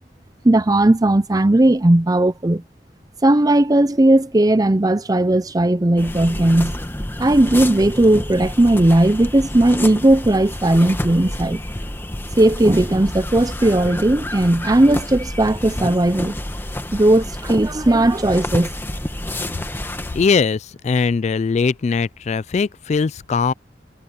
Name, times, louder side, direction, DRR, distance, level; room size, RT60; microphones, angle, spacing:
voice 1, 0.4-2.6 3.2-6.7 7.2-11.6 12.4-16.3 16.9-18.7, right 1 dB, 20° right, 0.6 m, -16 dB
sound 1, 6.0-20.3, left 1 dB, 15° left, 1.2 m, -29 dB
Guitar, 10.7-16.6, equal, 5° right, 4.0 m, -53 dB
voice 2, 20.1-23.5, left 5 dB, 40° left, 0.3 m, -20 dB
head